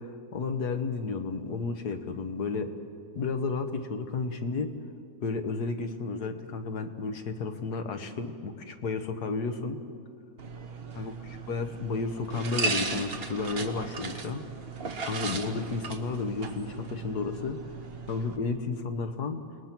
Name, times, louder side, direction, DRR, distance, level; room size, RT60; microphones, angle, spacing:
voice 1, 0.3-2.7 3.1-4.8 5.2-9.8 11.0-11.1 11.5-14.4 15.1-17.6 18.1-19.5, left 4 dB, 90° left, 7 dB, 1.8 m, -32 dB
sound 1, 10.4-18.4, right 3 dB, 40° right, 1.4 m, -36 dB
29.0 x 20.0 x 6.0 m, 2.4 s
omnidirectional pair, 1.6 m